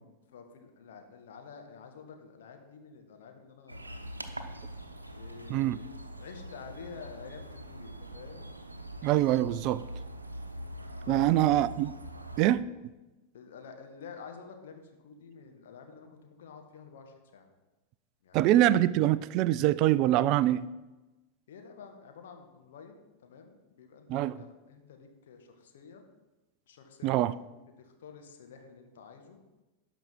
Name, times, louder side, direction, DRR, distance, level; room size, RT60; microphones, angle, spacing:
voice 1, 0.3-4.2 5.1-8.5 11.0-11.5 13.3-17.5 18.2-18.5 21.5-26.0 26.7-27.3 27.8-29.4, left 5 dB, 60° left, 1.6 m, -49 dB
sound 1, 3.7-12.5, equal, 80° right, 0.8 m, -43 dB
voice 2, 9.0-9.8 11.1-11.9 12.4-12.7 18.3-20.7 24.1-24.3 27.0-27.3, right 14 dB, 40° right, 0.3 m, -24 dB
12.0 x 5.1 x 7.2 m
figure-of-eight pair, 90°, 0 cm